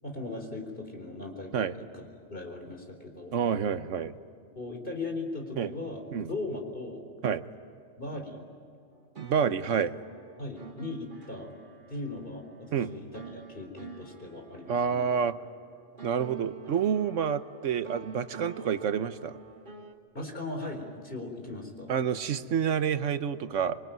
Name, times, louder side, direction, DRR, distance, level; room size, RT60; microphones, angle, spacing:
voice 1, 0.0-1.9 2.3-3.3 4.6-7.0 8.0-8.4 10.4-11.5 11.9-15.1 20.1-21.9, left 2 dB, 45° left, 2 dB, 4.5 m, -38 dB
voice 2, 3.3-4.2 5.6-5.7 6.1-6.3 7.2-7.4 9.2-9.9 12.7-12.9 14.7-15.4 16.0-19.4 21.9-23.8, right 7 dB, 85° right, 12 dB, 1.2 m, -28 dB
sound 1, 8.9-19.9, right 5 dB, 40° right, 2.1 m, -49 dB
26.0 x 24.0 x 9.3 m, 2.4 s
omnidirectional pair, 1.3 m